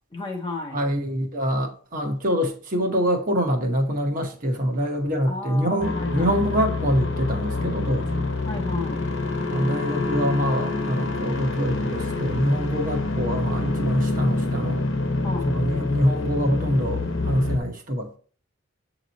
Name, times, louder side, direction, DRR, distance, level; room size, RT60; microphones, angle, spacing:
voice 1, 0.1-0.8 5.2-6.4 8.4-9.0 15.2-15.6, left 2 dB, 25° left, 0.9 m, -33 dB
voice 2, 0.7-8.3 9.5-14.8 15.5-18.2, equal, 40° right, 1.0 m, -25 dB
sound 1, 5.8-17.6, left 3 dB, 60° left, 1.0 m, -27 dB
8.1 x 3.0 x 4.0 m
head